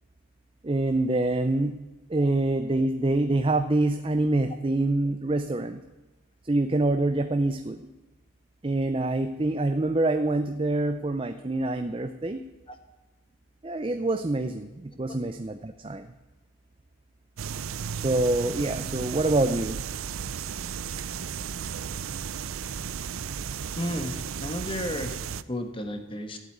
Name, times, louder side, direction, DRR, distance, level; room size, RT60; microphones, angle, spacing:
voice 1, 0.6-1.8 2.1-5.8 6.4-7.9 8.6-12.4 13.6-16.1 17.9-19.8, right 2 dB, 25° right, 8 dB, 0.5 m, -26 dB
sound 1, 17.4-25.4, right 7 dB, 85° right, 0.5 m, -34 dB
voice 2, 23.8-25.2 25.5-26.4, left 1 dB, 25° left, 6 dB, 1.3 m, -33 dB
14.0 x 8.0 x 9.3 m, 1.1 s
head